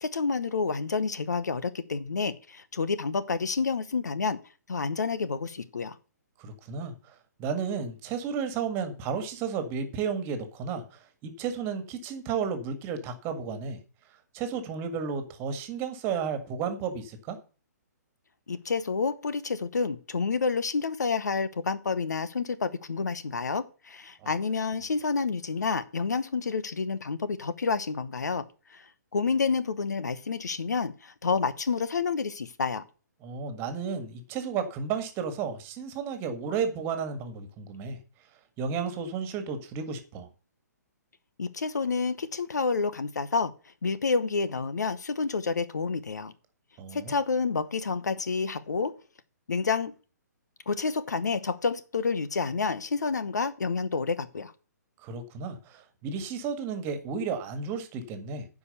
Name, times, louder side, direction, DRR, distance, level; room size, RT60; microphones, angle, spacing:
voice 1, 0.0-4.4 4.7-6.0 18.5-28.4 28.7-28.9 29.1-32.8 41.4-43.5 43.8-46.3 46.9-48.9 49.5-49.9 50.7-54.5, left 4 dB, 70° left, 0.9 m, -29 dB
voice 2, 6.4-13.8 14.3-17.4 33.2-38.0 38.6-40.3 46.8-47.1 55.0-58.5, right 6 dB, 25° right, 1.7 m, -33 dB
9.8 x 4.9 x 7.9 m
figure-of-eight pair, 130°, 9 cm